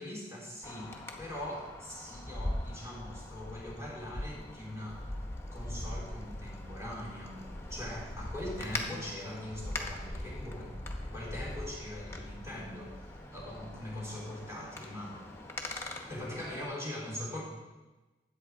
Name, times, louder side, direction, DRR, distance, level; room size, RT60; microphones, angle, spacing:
voice 1, 0.0-5.0 5.5-7.4 7.7-10.7 11.0-15.2 16.1-17.4, left 1 dB, 15° right, -5 dB, 3.5 m, -41 dB
Wind, 0.6-16.6, left 1 dB, 15° left, 1.0 m, -41 dB
13.0 x 8.4 x 3.6 m, 1.2 s
head